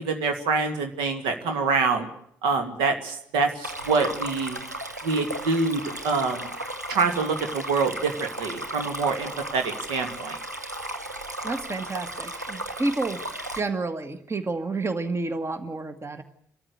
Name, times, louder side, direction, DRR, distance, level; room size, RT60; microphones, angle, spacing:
voice 1, 0.0-2.1 2.4-4.6 5.0-6.5 6.9-10.4, right 4 dB, 65° right, 6 dB, 2.2 m, -26 dB
Stream, 3.6-13.6, right 1 dB, 90° right, 0.9 m, -35 dB
voice 2, 11.4-13.2 13.5-16.2, right 3 dB, 30° right, 10 dB, 1.9 m, -30 dB
29.0 x 13.5 x 8.2 m, 0.71 s
figure-of-eight pair, 40°, 9 cm